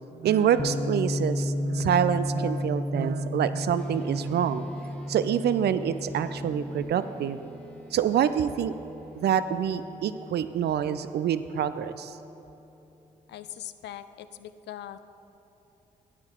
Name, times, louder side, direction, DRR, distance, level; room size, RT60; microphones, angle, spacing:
voice 1, 0.1-4.7 5.1-7.4 7.9-8.7 9.1-12.2, right 9 dB, 60° right, 12 dB, 0.5 m, -26 dB
Bass guitar, 0.6-6.8, left 1 dB, 25° left, 0.7 m, -32 dB
sound 1, 3.8-13.5, equal, 5° left, 1.3 m, -49 dB
voice 2, 13.3-15.0, left 11 dB, 65° left, 12 dB, 0.4 m, -41 dB
11.0 x 8.8 x 3.7 m, 3.0 s
hypercardioid pair, 40°, 19 cm